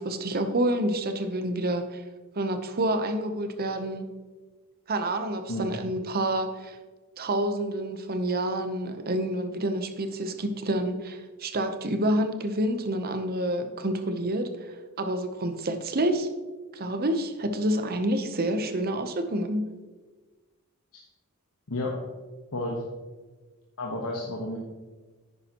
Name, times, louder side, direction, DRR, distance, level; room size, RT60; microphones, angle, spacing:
voice 1, 0.0-2.0 2.4-4.1 4.9-6.8 7.2-16.3 16.7-19.7, right 1 dB, 45° right, 8 dB, 0.8 m, -28 dB
voice 2, 22.5-22.8 23.8-24.6, left 2 dB, 80° left, -2 dB, 1.2 m, -31 dB
10.0 x 9.6 x 3.0 m, 1.3 s
head